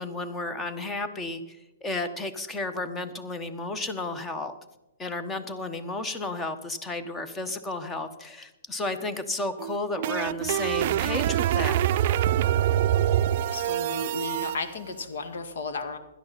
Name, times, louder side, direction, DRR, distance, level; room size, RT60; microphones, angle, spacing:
voice 1, 0.0-1.6 1.8-4.5 5.0-11.8, left 2 dB, 15° left, 10 dB, 1.3 m, -32 dB
sound 1, 9.6-14.6, right 11 dB, 50° right, 0.5 m, -25 dB
voice 2, 13.5-16.0, left 3 dB, 65° left, 7 dB, 2.0 m, -34 dB
16.5 x 11.5 x 4.3 m, 0.95 s
hypercardioid pair, 125°, 0 cm